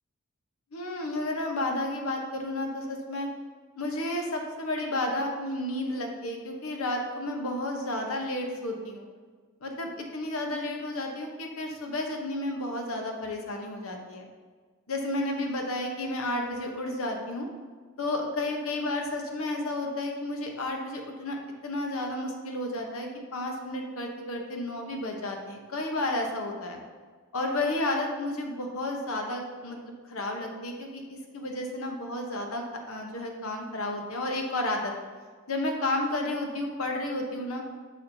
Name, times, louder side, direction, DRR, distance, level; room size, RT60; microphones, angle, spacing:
voice 1, 0.7-3.3 3.8-9.1 9.6-14.3 14.9-17.5 18.0-21.4 21.6-26.8 27.3-31.0 31.3-34.9 35.5-37.6, left 1 dB, 85° left, 2 dB, 1.0 m, -32 dB
6.9 x 6.3 x 2.7 m, 1.5 s
head